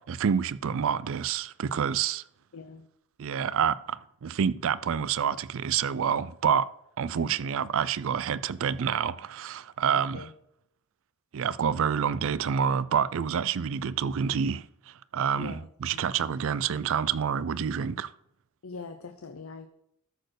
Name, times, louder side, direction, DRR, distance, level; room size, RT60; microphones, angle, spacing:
voice 1, 0.1-2.2 3.2-6.7 7.0-10.3 11.3-18.1, right 7 dB, 60° right, 0.4 m, -28 dB
voice 2, 2.5-2.9 7.1-7.5 10.1-10.3 15.3-16.0 18.6-19.7, left 4 dB, 65° left, 0.7 m, -43 dB
13.0 x 4.4 x 6.3 m
head